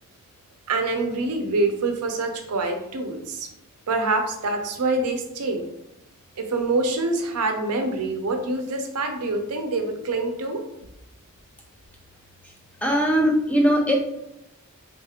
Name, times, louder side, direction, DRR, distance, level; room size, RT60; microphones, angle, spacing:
voice 1, 0.7-3.5 3.9-5.7 6.4-10.6, right 2 dB, 85° right, 4 dB, 0.6 m, -25 dB
voice 2, 12.8-13.9, equal, 5° left, -1 dB, 0.5 m, -20 dB
3.8 x 2.9 x 2.4 m, 0.86 s
head